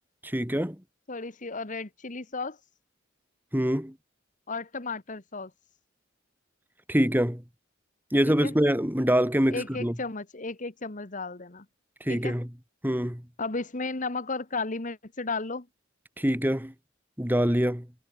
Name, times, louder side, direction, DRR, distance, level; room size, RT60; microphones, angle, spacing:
voice 1, 0.2-0.8 3.5-3.9 6.9-7.4 8.1-10.0 12.0-12.5 12.8-13.2 16.2-16.7 17.2-17.9, equal, 10° right, 3.8 m, -25 dB
voice 2, 1.1-2.6 4.5-5.5 8.4-8.5 9.5-11.6 12.1-12.4 13.4-15.7, left 3 dB, 40° left, 1.4 m, -34 dB
head